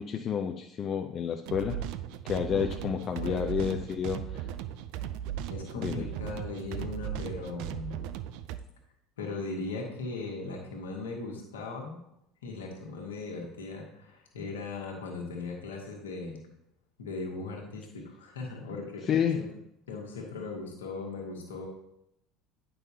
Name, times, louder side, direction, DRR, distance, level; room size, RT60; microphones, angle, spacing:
voice 1, 0.0-1.8 2.2-4.4 5.8-6.0 19.1-19.4, left 8 dB, 45° left, 4 dB, 0.5 m, -30 dB
sound 1, 1.5-8.6, right 11 dB, 65° right, 0.4 m, -37 dB
voice 2, 3.2-3.5 5.5-8.0 9.2-12.0 12.4-16.4 17.0-19.5 19.9-21.7, left 3 dB, 80° left, -1 dB, 1.4 m, -38 dB
9.2 x 5.4 x 2.8 m, 0.80 s
hypercardioid pair, 70°, 0 cm